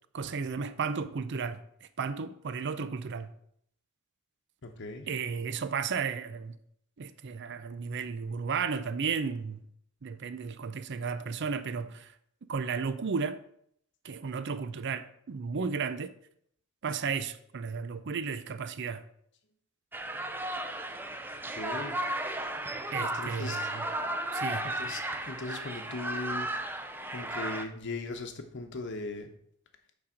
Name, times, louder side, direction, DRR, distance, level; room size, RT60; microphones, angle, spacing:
voice 1, 0.1-3.3 5.1-6.6 7.0-9.7 10.0-12.1 12.5-13.4 14.0-16.1 16.8-19.0 22.9-23.9 24.3-24.7, right 5 dB, 55° right, 0.5 m, -34 dB
voice 2, 4.6-5.1 21.6-22.0 22.9-23.7 24.6-26.5 27.1-29.3, left 2 dB, 60° left, 1.0 m, -39 dB
sound 1, 19.9-27.6, right 1 dB, 10° right, 0.5 m, -34 dB
8.5 x 4.1 x 5.0 m
head